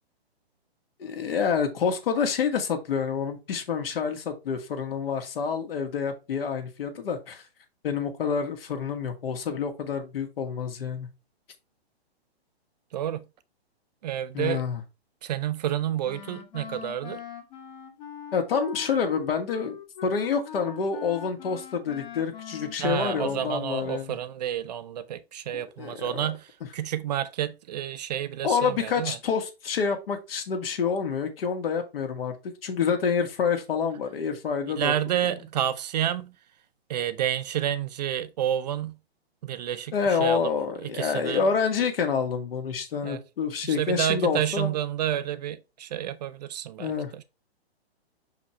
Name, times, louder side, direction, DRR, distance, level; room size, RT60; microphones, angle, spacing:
voice 1, 1.0-7.4 7.8-11.1 14.3-14.8 18.3-24.2 25.5-26.2 28.4-32.4 32.6-34.9 39.9-44.7 46.8-47.1, left 6 dB, 60° left, 2.0 m, -28 dB
voice 2, 12.9-13.2 14.0-14.6 15.2-17.2 22.8-29.2 34.7-36.3 36.9-39.0 39.4-40.5 40.8-41.4 43.0-43.2 43.6-47.2, right 10 dB, 40° right, 0.6 m, -29 dB
Wind instrument woodwind instrument, 16.0-23.6, left 8 dB, 45° left, 1.7 m, -42 dB
6.2 x 5.0 x 3.1 m
hypercardioid pair, 145°, 32 cm